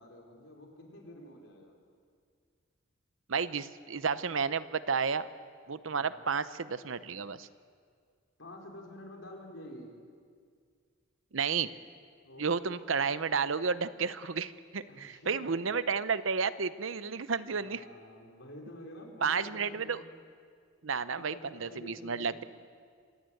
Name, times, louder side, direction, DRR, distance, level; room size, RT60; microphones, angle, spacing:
voice 1, 0.0-1.8 5.8-6.2 8.4-9.9 12.2-12.5 14.9-15.7 17.6-20.1 21.1-22.5, left 1 dB, 70° left, 1 dB, 4.8 m, -49 dB
voice 2, 3.3-5.3 5.7-7.5 11.3-11.7 12.4-17.8 19.2-20.0 20.8-22.4, right 5 dB, 75° right, 14 dB, 0.8 m, -32 dB
26.0 x 18.5 x 7.9 m, 2.1 s
head